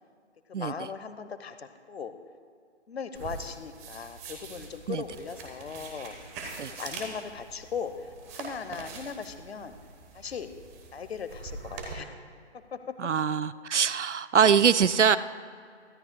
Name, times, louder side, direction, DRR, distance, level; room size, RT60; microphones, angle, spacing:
voice 1, 0.5-2.2 2.9-6.1 6.7-9.7 10.1-10.5 10.9-12.1 12.5-13.1 15.1-15.2, left 6 dB, 60° left, 10 dB, 1.0 m, -38 dB
sound 1, 3.1-11.9, right 3 dB, 15° right, 1.0 m, -43 dB
voice 2, 13.0-15.2, right 7 dB, 80° right, 15 dB, 0.6 m, -23 dB
23.5 x 13.0 x 2.3 m, 2.3 s
figure-of-eight pair, 150°, 35 cm